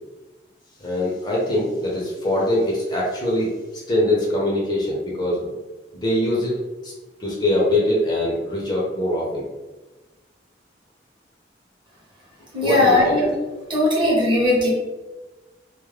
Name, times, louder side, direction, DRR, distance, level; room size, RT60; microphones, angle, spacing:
voice 1, 0.8-5.5 5.9-6.5 6.8-6.9 7.2-9.4 12.6-13.2, left 1 dB, 25° left, -5 dB, 0.5 m, -23 dB
voice 2, 12.5-13.3 13.7-14.7, left 1 dB, 25° right, -5 dB, 0.8 m, -18 dB
2.3 x 2.0 x 3.2 m, 1.2 s
head